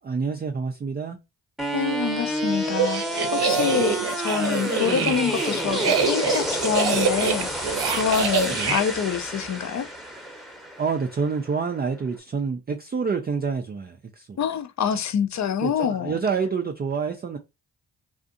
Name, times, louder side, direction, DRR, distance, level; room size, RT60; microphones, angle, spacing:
voice 1, 0.0-1.2 8.5-8.8 10.8-14.4 15.6-17.4, right 5 dB, 25° right, 0.3 m, -27 dB
sound 1, 1.6-11.6, right 1 dB, ahead, 0.8 m, -29 dB
voice 2, 1.7-3.0 3.3-9.9 14.4-16.2, left 7 dB, 40° left, 0.5 m, -26 dB
sound 2, 2.6-8.8, right 5 dB, 60° right, 0.7 m, -26 dB
2.5 x 2.5 x 2.5 m
supercardioid pair, 45°, 44 cm